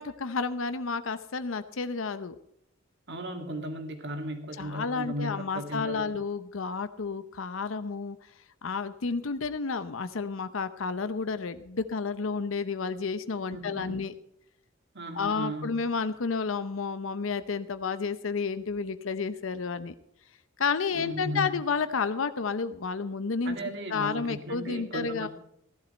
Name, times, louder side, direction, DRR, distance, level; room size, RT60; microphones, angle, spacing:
voice 1, 0.0-2.4 4.6-8.2 8.6-14.1 15.1-20.0 20.6-23.6 23.9-25.3, left 5 dB, 75° left, 12 dB, 0.7 m, -31 dB
voice 2, 3.1-6.1 13.5-13.9 14.9-15.8 20.9-21.5 23.4-25.3, right 1 dB, 60° right, 6 dB, 2.2 m, -36 dB
15.0 x 11.5 x 4.4 m, 0.74 s
head